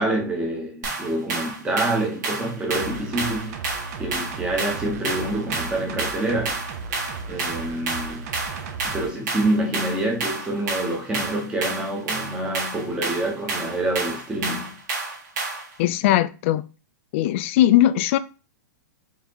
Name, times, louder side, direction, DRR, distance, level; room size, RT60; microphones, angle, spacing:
voice 1, 0.0-3.5 4.0-6.6 7.3-8.3 8.9-14.8, right 1 dB, 10° right, 0.9 m, -26 dB
sound 1, 0.8-15.7, right 3 dB, 70° right, 1.9 m, -30 dB
sound 2, 2.7-9.1 9.4-9.5, right 4 dB, 55° right, 0.7 m, -36 dB
voice 2, 15.8-16.6 17.1-18.2, left 13 dB, 40° left, 0.4 m, -19 dB
4.0 x 3.5 x 2.9 m
hypercardioid pair, 155°, 10 cm